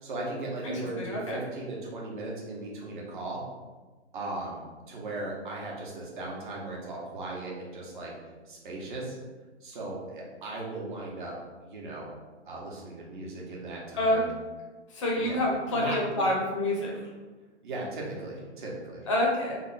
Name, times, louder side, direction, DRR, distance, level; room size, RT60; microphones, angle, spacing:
voice 1, 0.0-3.4 4.1-8.1 8.5-9.1 9.6-12.1 12.5-14.3 15.1-16.0 16.9-17.1 17.6-19.1, right 2 dB, 45° right, -3 dB, 1.0 m, -37 dB
voice 2, 0.6-1.4 14.0-14.2 14.9-16.9 19.1-19.6, left 1 dB, 30° left, -1 dB, 0.6 m, -27 dB
3.5 x 2.2 x 4.0 m, 1.3 s
hypercardioid pair, 160°, 35 cm